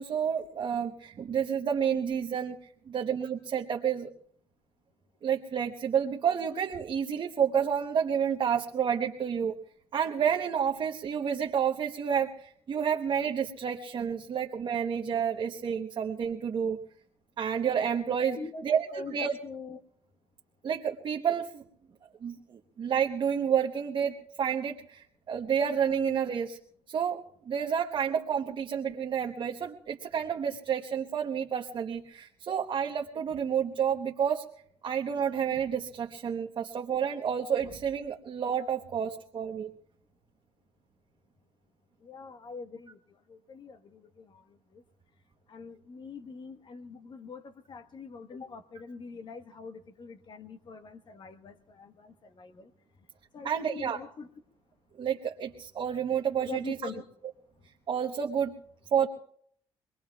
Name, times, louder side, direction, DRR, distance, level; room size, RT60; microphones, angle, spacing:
voice 1, 0.0-2.6 2.9-4.1 5.2-9.6 9.9-16.8 17.4-18.4 18.6-19.3 20.6-21.6 22.2-26.6 26.9-34.4 34.8-39.7 53.4-54.0 55.0-56.8 57.9-58.5 58.9-59.1, right 8 dB, 50° right, 2 dB, 1.0 m, -30 dB
voice 2, 18.9-19.8 42.0-44.8 45.5-52.7 53.3-54.3 56.4-57.0, left 4 dB, 50° left, 8 dB, 1.3 m, -44 dB
25.5 x 20.5 x 2.4 m, 0.62 s
cardioid pair, 90°, 10 cm